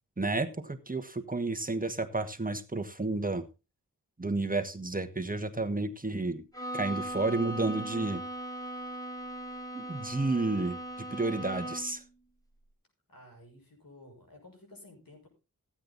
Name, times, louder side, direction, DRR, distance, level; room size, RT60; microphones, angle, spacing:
voice 1, 0.2-3.4 4.2-6.4 6.7-8.2 9.7-12.0, right 2 dB, 25° right, 8 dB, 1.3 m, -31 dB
Bowed string instrument, 6.5-12.1, right 1 dB, 10° left, 2.0 m, -39 dB
voice 2, 13.1-15.3, left 1 dB, 80° left, 1 dB, 6.0 m, -53 dB
15.0 x 8.8 x 4.0 m, 0.29 s
wide cardioid pair, 50°, 34 cm